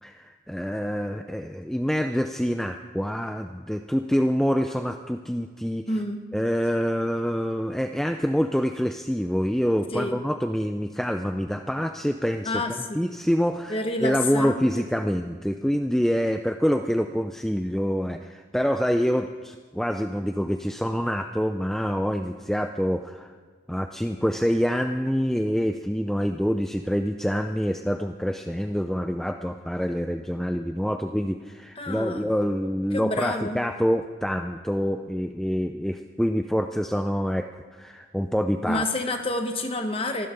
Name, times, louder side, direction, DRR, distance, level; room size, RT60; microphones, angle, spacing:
voice 1, 0.0-5.8 6.3-23.3 23.7-38.9, equal, ahead, 6 dB, 0.4 m, -26 dB
voice 2, 5.9-6.2 9.9-10.2 12.4-13.0 13.7-14.7 31.8-32.3 32.9-33.6 38.7-40.3, left 1 dB, 30° left, 5 dB, 1.3 m, -28 dB
25.0 x 12.5 x 3.9 m, 1.5 s
head